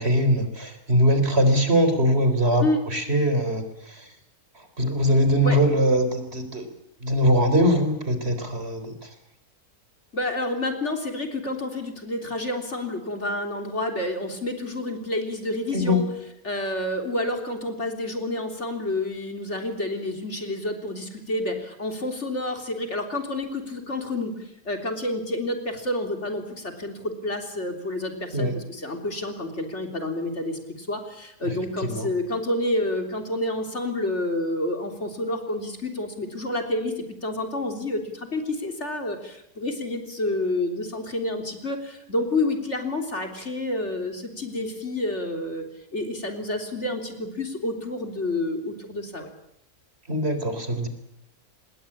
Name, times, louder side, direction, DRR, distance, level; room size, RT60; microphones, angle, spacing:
voice 1, 0.0-4.1 4.6-6.6 7.0-9.1 15.7-16.0 28.3-28.5 31.4-32.1 50.1-50.9, equal, 45° right, 8 dB, 4.1 m, -22 dB
voice 2, 10.1-16.1 16.4-45.6 45.9-49.3, left 1 dB, 50° left, 5 dB, 3.8 m, -29 dB
26.5 x 21.0 x 8.8 m, 0.80 s
omnidirectional pair, 1.6 m